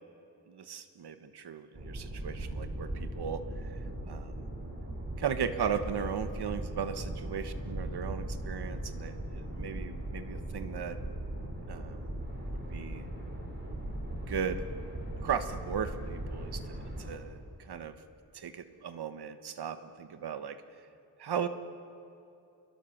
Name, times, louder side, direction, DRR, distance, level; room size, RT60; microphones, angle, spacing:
voice 1, 0.5-3.4 4.1-4.4 5.2-11.0 11.7-12.1 12.5-13.0 14.3-14.6 15.2-16.6 17.0-17.9 18.3-20.6 21.2-21.5, right 7 dB, 75° right, 10 dB, 1.3 m, -37 dB
sound 1, 1.8-17.1, right 1 dB, 25° right, 4.9 m, -39 dB
27.5 x 22.0 x 7.3 m, 2.7 s
wide cardioid pair, 135°, 40 cm